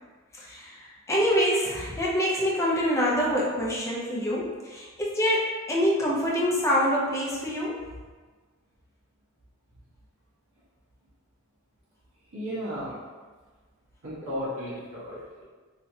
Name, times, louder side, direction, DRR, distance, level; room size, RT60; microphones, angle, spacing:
voice 1, 0.4-7.8 14.2-14.3 15.1-15.2, equal, 15° left, -5 dB, 0.6 m, -26 dB
voice 2, 12.3-12.9 14.0-15.4, equal, 80° right, -8 dB, 1.3 m, -34 dB
3.1 x 3.0 x 2.7 m, 1.4 s
head